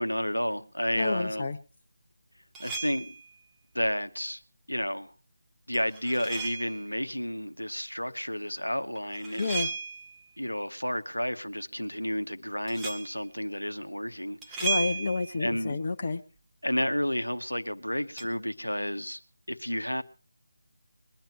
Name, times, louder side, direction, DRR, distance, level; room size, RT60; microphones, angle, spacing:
voice 1, 0.0-1.5 2.6-3.1 3.7-4.4 4.7-5.1 5.7-9.7 10.4-14.6 15.4-15.8 16.6-19.2 19.5-20.0, equal, 85° left, 1.0 m, -31 dB
voice 2, 1.0-1.6 9.4-9.7 14.6-16.2, left 3 dB, 35° left, 0.9 m, -29 dB
sound 1, 2.5-3.3 5.7-6.9 8.9-10.2 12.7-13.2 14.4-15.4 18.2-18.3, right 4 dB, 5° right, 0.9 m, -35 dB
21.0 x 10.5 x 4.5 m
figure-of-eight pair, 160°, 0 cm